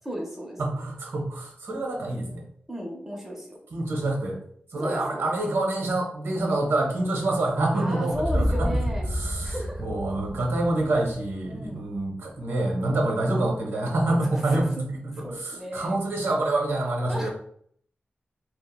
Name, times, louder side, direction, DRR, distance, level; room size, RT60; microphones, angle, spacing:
voice 1, 0.1-0.6 2.7-3.5 4.7-5.2 7.7-9.9 11.5-11.8 14.3-14.4 15.1-16.0 17.1-17.3, equal, 5° right, -1 dB, 0.5 m, -34 dB
voice 2, 0.6-2.4 3.7-4.4 4.7-8.7 9.1-17.3, right 2 dB, 85° right, 0 dB, 0.6 m, -27 dB
sound 1, 8.1-12.1, equal, 40° left, 0.5 m, -29 dB
2.9 x 2.0 x 2.2 m, 0.63 s
wide cardioid pair, 135°, 4 cm